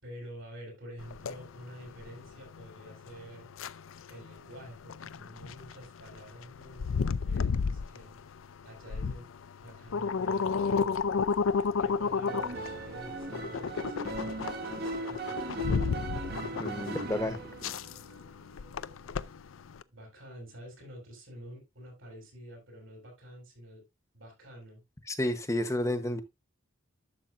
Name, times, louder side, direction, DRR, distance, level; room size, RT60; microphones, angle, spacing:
voice 1, 0.0-3.5 4.1-8.2 8.6-9.3 9.6-11.0 11.8-15.6 19.9-23.8 24.1-24.8, equal, 80° right, 6.8 m, -48 dB
sound 1, 1.0-19.8, left 5 dB, 85° left, 0.5 m, -33 dB
sound 2, 12.3-19.2, right 3 dB, 50° right, 1.1 m, -38 dB
voice 2, 16.6-17.4 25.1-26.2, left 1 dB, 15° left, 0.9 m, -31 dB
11.5 x 6.9 x 2.5 m
head